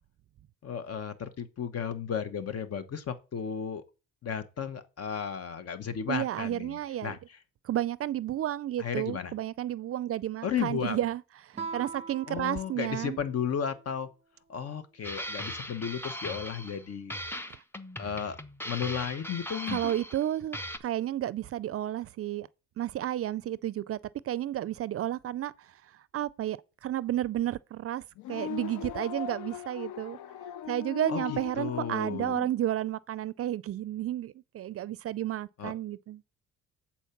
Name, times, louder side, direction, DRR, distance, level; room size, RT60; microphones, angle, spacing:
voice 1, 0.6-3.8 4.2-7.2 8.8-9.3 10.4-11.0 12.3-14.1 14.5-17.2 18.0-18.4 18.6-19.9 31.1-32.3 35.6-35.7, left 7 dB, 55° left, 1.2 m, -34 dB
voice 2, 6.1-7.2 7.6-13.2 19.7-22.5 22.8-24.0 24.2-25.7 26.1-28.0 28.3-30.2 30.7-36.2, right 12 dB, 50° right, 0.4 m, -32 dB
Guitar, 11.5-14.0, right 5 dB, 20° right, 0.9 m, -42 dB
sound 1, 15.0-16.8 17.1-20.3 20.5-20.8, equal, 5° left, 0.7 m, -39 dB
sound 2, 28.2-32.5, left 9 dB, 75° left, 0.5 m, -39 dB
8.1 x 4.4 x 5.8 m
cardioid pair, 90°, 30 cm